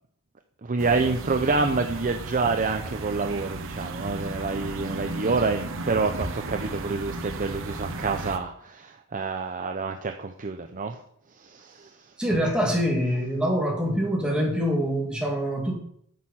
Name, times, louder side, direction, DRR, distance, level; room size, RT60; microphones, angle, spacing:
voice 1, 0.6-11.0 11.3-12.1, right 4 dB, 40° right, 5 dB, 0.6 m, -27 dB
sound 1, 0.8-8.4, right 2 dB, 65° right, 1.1 m, -34 dB
voice 2, 12.2-15.8, equal, 5° right, -2 dB, 2.5 m, -25 dB
10.5 x 6.6 x 5.7 m, 0.67 s
head